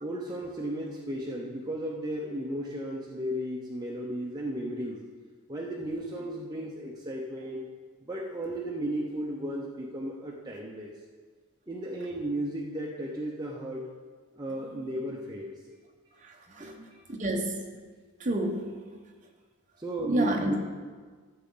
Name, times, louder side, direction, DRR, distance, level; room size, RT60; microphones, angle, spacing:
voice 1, 0.0-5.0 5.5-7.6 8.0-10.9 11.7-13.9 14.4-15.5 16.6-17.0 19.8-20.6, right 1 dB, 20° right, -3 dB, 0.8 m, -34 dB
voice 2, 16.2-16.7 17.1-17.6 18.2-18.8 20.1-20.6, right 1 dB, 35° right, 2 dB, 1.1 m, -29 dB
13.5 x 7.3 x 3.9 m, 1.5 s
head